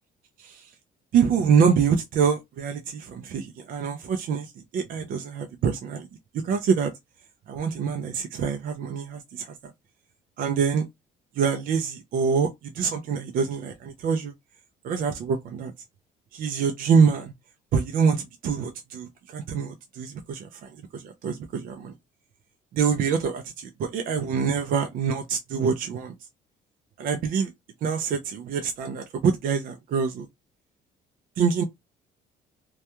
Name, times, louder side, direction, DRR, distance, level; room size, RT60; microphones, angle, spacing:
voice 1, 1.1-6.1 6.4-6.9 7.5-9.5 10.4-10.9 11.4-14.3 14.8-15.7 16.3-17.3 17.7-20.5 20.9-21.9 22.7-26.1 27.0-27.5 27.8-30.3 31.4-31.6, right 6 dB, 55° right, 0.5 m, -25 dB
2.3 x 2.2 x 2.8 m
cardioid pair, 110°, 17 cm